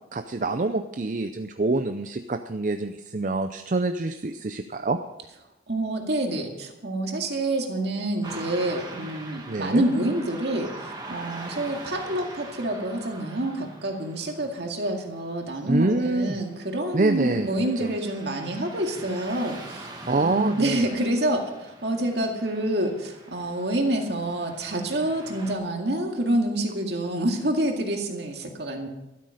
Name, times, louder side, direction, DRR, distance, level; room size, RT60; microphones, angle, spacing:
voice 1, 0.1-5.0 9.5-9.8 15.7-16.4 16.9-17.5 17.8-17.9 20.1-20.9, right 3 dB, 45° right, 8 dB, 0.5 m, -26 dB
voice 2, 5.7-21.5 21.8-28.9, right 1 dB, 65° right, 3 dB, 2.1 m, -27 dB
Car passing by / Traffic noise roadway noise, 8.2-25.5, right 2 dB, 20° right, 1.8 m, -43 dB
13.0 x 13.0 x 5.1 m, 0.96 s
head